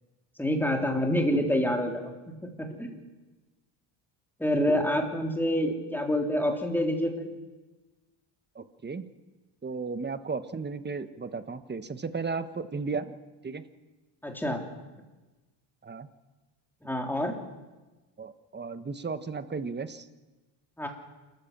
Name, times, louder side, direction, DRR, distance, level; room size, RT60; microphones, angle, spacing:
voice 1, 0.4-2.1 2.4-3.0 4.4-7.3 14.2-14.6 16.8-17.3 20.8-20.9, left 1 dB, 5° left, 2 dB, 3.5 m, -27 dB
voice 2, 8.5-9.0 9.6-13.2 13.4-13.7 15.8-16.1 18.2-20.1, right 4 dB, 20° right, 11 dB, 1.3 m, -35 dB
28.0 x 13.5 x 7.4 m, 1.2 s
cardioid pair, 110°, 49 cm